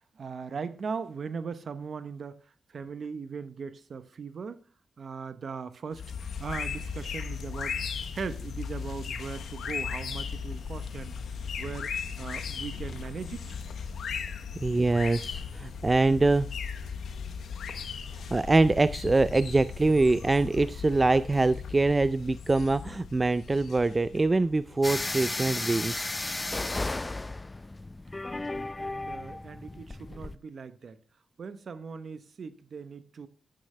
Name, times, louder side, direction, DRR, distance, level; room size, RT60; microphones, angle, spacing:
voice 1, 0.1-4.6 5.0-6.1 6.4-7.8 8.1-11.2 11.6-11.9 12.2-13.6 28.8-31.0 31.4-33.3, right 5 dB, 60° right, 0.8 m, -39 dB
sound 1, 5.9-25.4, left 6 dB, 75° left, 1.1 m, -37 dB
voice 2, 14.6-16.5 18.3-26.0, right 2 dB, 30° right, 0.4 m, -24 dB
sound 2, 24.8-30.4, left 2 dB, 25° left, 0.5 m, -34 dB
11.5 x 8.9 x 3.3 m
supercardioid pair, 50°, 0 cm